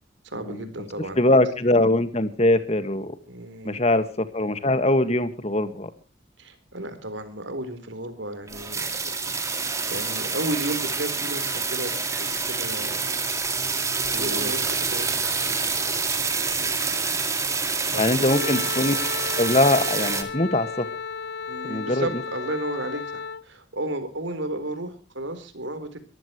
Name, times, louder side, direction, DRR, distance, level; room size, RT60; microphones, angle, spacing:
voice 1, 0.2-1.2 3.3-3.9 6.4-9.6 9.9-13.2 14.1-17.0 17.9-18.7 21.5-26.0, right 1 dB, 75° right, 10 dB, 4.2 m, -34 dB
voice 2, 1.2-3.2 3.6-5.9 14.1-14.5 18.0-19.0 19.4-20.9 21.7-22.1, left 1 dB, 35° left, 11 dB, 1.8 m, -22 dB
sound 1, 8.5-20.2, right 4 dB, 15° right, 2.4 m, -27 dB
Wind instrument woodwind instrument, 18.3-23.4, left 5 dB, 55° left, 0.8 m, -34 dB
23.5 x 15.0 x 3.2 m, 0.36 s
head